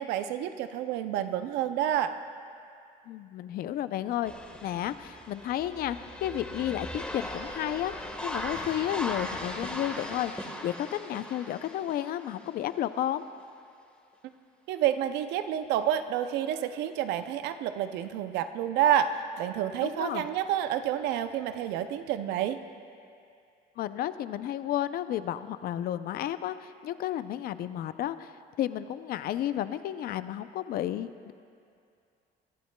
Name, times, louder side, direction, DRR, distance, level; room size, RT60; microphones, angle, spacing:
voice 1, 0.0-2.1 14.7-19.1 19.4-22.6, right 11 dB, 90° right, 10 dB, 0.5 m, -29 dB
voice 2, 3.1-4.3 4.6-13.3 19.8-20.3 23.8-31.3, left 12 dB, 65° left, 13 dB, 0.5 m, -32 dB
sound 1, 4.3-12.8 13.4-13.5 15.9-16.0, left 1 dB, 5° left, 1.4 m, -39 dB
22.0 x 11.5 x 2.2 m, 2.4 s
cardioid pair, 110°, 17 cm